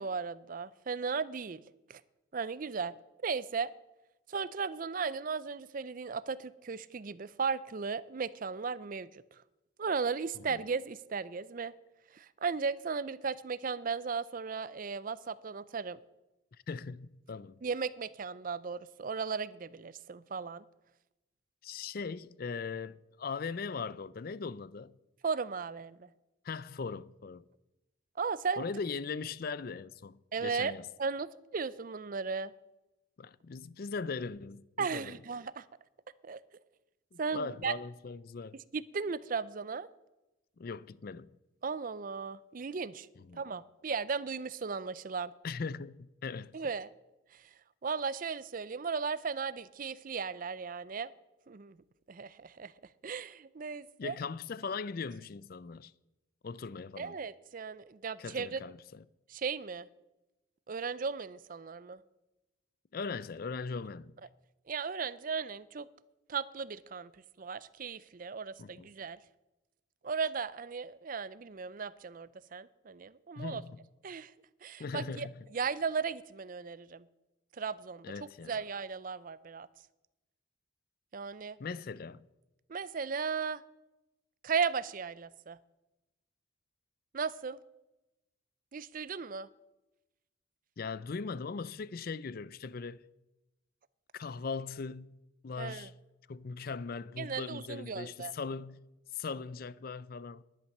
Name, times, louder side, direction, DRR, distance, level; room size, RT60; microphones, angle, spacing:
voice 1, 0.0-1.6 1.9-2.0 2.3-2.9 3.2-3.7 4.3-9.4 9.8-11.7 12.1-16.0 17.6-20.6 25.2-26.1 28.2-28.7 30.3-30.7 31.0-32.5 34.8-35.7 36.2-36.4 37.2-37.7 38.7-39.9 41.6-43.1 43.3-45.3 46.5-46.9 47.3-47.5 47.8-51.1 51.5-51.8 52.1-52.7 53.0-54.2 57.0-58.6 59.3-59.9 60.7-62.0 64.7-65.9 66.3-67.1 67.4-69.2 70.0-73.6 74.0-74.3 74.6-77.1 77.6-79.7 81.1-81.6 82.7-83.6 84.4-85.6 87.1-87.6 88.7-89.5 95.6-95.9 97.2-98.3, right 5 dB, 40° right, 0.4 m, -36 dB
voice 2, 16.7-17.6 21.6-25.0 26.4-27.4 28.6-30.8 33.2-35.1 37.1-38.6 40.6-41.3 43.3-43.4 45.4-46.6 54.0-55.9 56.4-57.2 58.2-59.0 62.9-64.1 68.6-68.9 73.4-73.8 74.8-75.3 78.0-78.6 81.6-82.3 90.8-93.0 94.1-95.2 95.4-95.9 96.3-98.9 99.1-100.4, left 4 dB, 45° left, 0.4 m, -39 dB
11.0 x 10.5 x 6.5 m
head